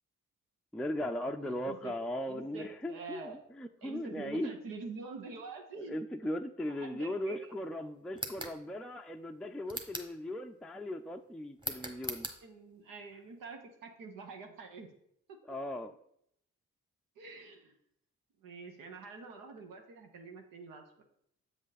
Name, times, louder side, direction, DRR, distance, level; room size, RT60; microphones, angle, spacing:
voice 1, 0.7-4.5 5.7-12.3 15.4-15.9, left 1 dB, ahead, 4 dB, 0.4 m, -38 dB
voice 2, 1.3-1.9 2.2-3.4 3.8-6.0 6.6-7.6 11.8-12.0 12.4-14.9 17.2-17.8 18.4-21.0, right 4 dB, 90° right, 3 dB, 0.9 m, -46 dB
sound 1, 8.1-8.6 9.7-10.2 11.6-12.4, right 1 dB, 15° right, 1.2 m, -40 dB
7.5 x 5.1 x 4.1 m, 0.72 s
supercardioid pair, 55°, 32 cm